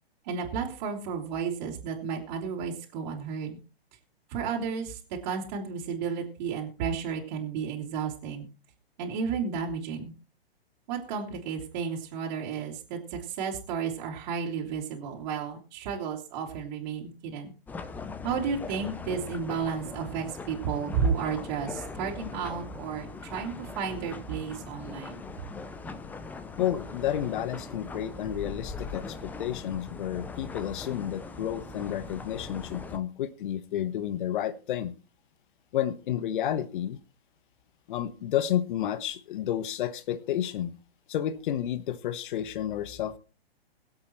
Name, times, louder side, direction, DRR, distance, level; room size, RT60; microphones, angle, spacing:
voice 1, 0.2-3.6 4.3-8.5 9.0-10.1 10.9-17.5 18.2-25.2, right 6 dB, 40° right, -2 dB, 2.9 m, -32 dB
sound 1, 17.7-33.0, left 4 dB, 5° left, 0.5 m, -40 dB
voice 2, 26.6-34.9 35.7-37.0 37.9-40.7 41.1-43.2, left 11 dB, 55° left, 14 dB, 1.2 m, -31 dB
22.5 x 7.9 x 3.1 m, 0.34 s
hypercardioid pair, 130°, 31 cm